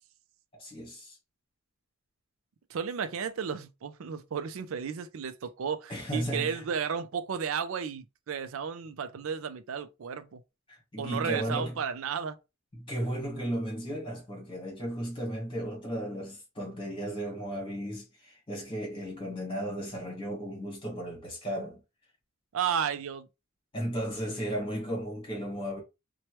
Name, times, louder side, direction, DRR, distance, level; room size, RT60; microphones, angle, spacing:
voice 1, 0.6-1.2 5.9-6.6 10.7-11.8 12.7-21.8 23.7-25.8, equal, 25° left, 1.4 m, -35 dB
voice 2, 2.7-10.4 11.0-12.4 22.5-23.3, right 7 dB, 65° right, 0.4 m, -33 dB
2.9 x 2.2 x 3.0 m
head